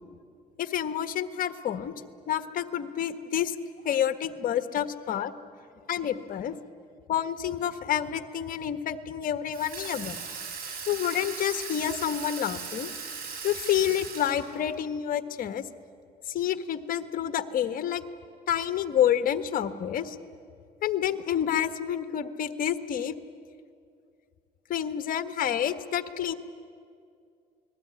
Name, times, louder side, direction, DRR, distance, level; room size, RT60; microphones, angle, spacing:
voice 1, 0.6-1.9 2.3-3.6 3.8-5.3 5.9-6.6 7.1-10.2 10.9-12.9 13.4-15.6 16.3-18.0 18.5-20.2 20.8-23.1 24.7-26.3, left 10 dB, 55° left, 10 dB, 1.4 m, -28 dB
Water tap faucet / Sink (filling or washing), 9.5-14.8, right 5 dB, 60° right, 7.8 m, -38 dB
29.0 x 20.0 x 9.9 m, 2.3 s
cardioid pair, 110°, 17 cm